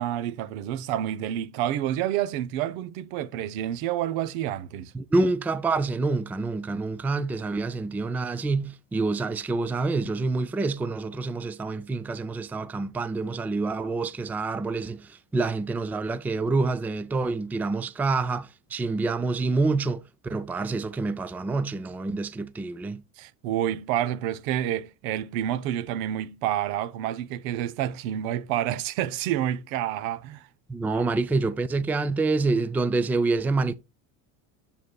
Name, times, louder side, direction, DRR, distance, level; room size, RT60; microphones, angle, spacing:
voice 1, 0.0-4.9 23.2-30.5 30.9-31.0, right 11 dB, 85° right, 0.9 m, -29 dB
voice 2, 4.9-23.0 30.7-33.7, right 3 dB, 5° right, 0.3 m, -27 dB
9.3 x 7.1 x 2.3 m
cardioid pair, 130°, 39 cm